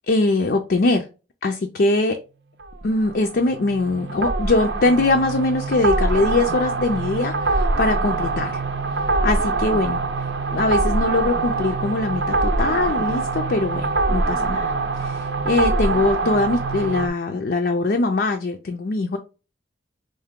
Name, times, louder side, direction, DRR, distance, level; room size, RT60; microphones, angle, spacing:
voice 1, 0.1-1.1 1.4-2.2 2.8-8.6 9.2-10.0 10.5-14.7 15.0-19.2, left 2 dB, 55° left, 0.4 m, -22 dB
sound 1, 2.6-17.1, right 3 dB, 70° right, 0.6 m, -24 dB
4.6 x 2.6 x 3.6 m
head